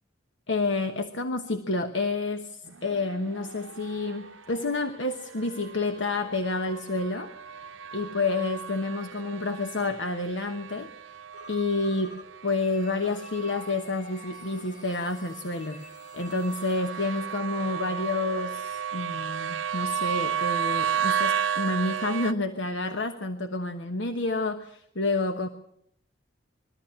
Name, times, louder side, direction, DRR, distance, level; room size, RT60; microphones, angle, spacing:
voice 1, 0.5-7.3 7.9-10.9 11.5-15.8 16.1-25.5, left 3 dB, 75° left, 7 dB, 1.1 m, -29 dB
sound 1, 2.6-22.3, right 8 dB, 85° right, 0.7 m, -34 dB
sound 2, 11.3-12.2 12.5-17.2, left 2 dB, 40° left, 3.1 m, -50 dB
22.0 x 14.0 x 8.8 m, 0.72 s
head